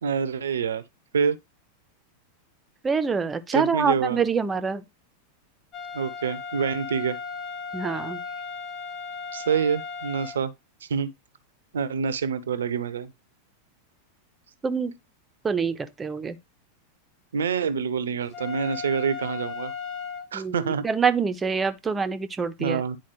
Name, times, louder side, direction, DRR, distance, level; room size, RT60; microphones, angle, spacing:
voice 1, 0.0-0.8 1.1-1.4 3.5-4.2 5.9-7.2 9.3-10.5 10.9-11.1 11.7-13.1 17.3-19.7 20.3-20.8 22.6-23.0, right 6 dB, 65° right, 0.8 m, -26 dB
voice 2, 2.8-4.8 7.7-8.2 14.6-14.9 15.4-16.4 20.3-22.8, right 5 dB, 15° right, 0.8 m, -26 dB
sound 1, 5.7-10.4 18.3-20.3, left 5 dB, 30° left, 1.9 m, -36 dB
10.5 x 4.4 x 3.0 m
figure-of-eight pair, 90°, 0 cm